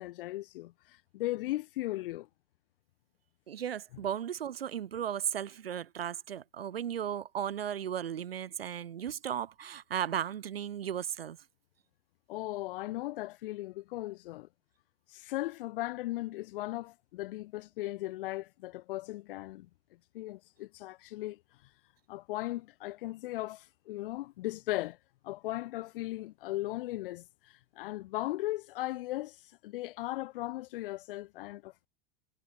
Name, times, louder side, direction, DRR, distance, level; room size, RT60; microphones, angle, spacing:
voice 1, 0.0-2.3 12.3-14.5 15.1-19.7 20.1-21.7 22.1-25.0 25.2-31.9, left 17 dB, 65° left, 1.6 m, -37 dB
voice 2, 3.5-11.4, right 9 dB, 80° right, 1.9 m, -35 dB
hypercardioid pair, 90°, 29 cm